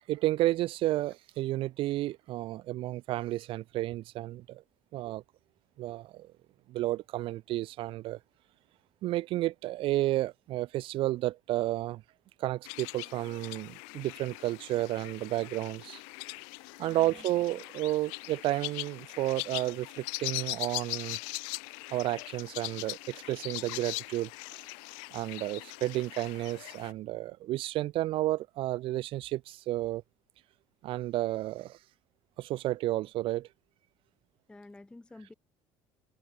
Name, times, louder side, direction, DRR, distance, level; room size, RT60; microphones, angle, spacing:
voice 1, 0.1-4.6 4.9-5.2 5.8-6.3 6.7-8.2 9.0-12.0 12.4-16.0 16.8-21.2 21.9-24.3 25.1-30.0 30.8-31.8 32.4-33.5, right 16 dB, 55° right, 0.4 m, -32 dB
sound 1, 12.6-26.9, left 40 dB or more, 80° left, 0.8 m, -41 dB
voice 2, 16.9-17.3 34.5-35.3, left 2 dB, 10° left, 0.4 m, -50 dB
supercardioid pair, 85°, 11 cm